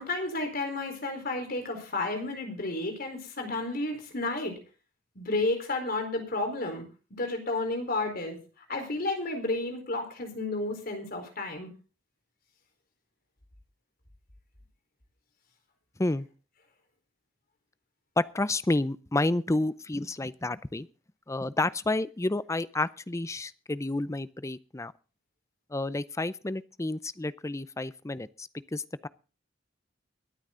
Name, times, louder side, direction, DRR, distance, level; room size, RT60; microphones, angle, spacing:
voice 1, 0.0-4.6 5.2-6.8 7.1-8.4 8.7-11.7, left 2 dB, 50° left, 5 dB, 4.2 m, -31 dB
voice 2, 18.2-20.9 21.3-24.9 25.7-29.1, left 2 dB, 15° left, 16 dB, 0.5 m, -30 dB
22.0 x 9.1 x 3.8 m, 0.35 s
head